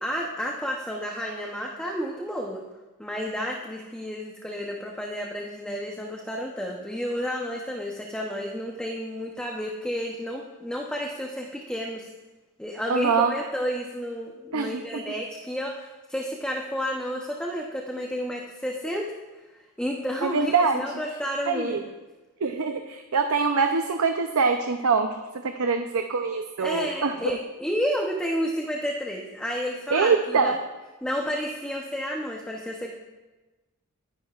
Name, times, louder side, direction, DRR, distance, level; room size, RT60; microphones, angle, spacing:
voice 1, 0.0-2.6 3.0-12.1 12.6-19.2 19.8-21.8 26.6-30.6 31.0-32.9, equal, 5° left, -1 dB, 0.8 m, -31 dB
voice 2, 12.9-13.3 14.5-15.0 20.2-20.8 21.5-21.8 22.4-25.1 25.4-27.4 29.9-30.6, right 5 dB, 75° right, 5 dB, 0.6 m, -24 dB
23.0 x 10.5 x 2.4 m, 1.2 s
head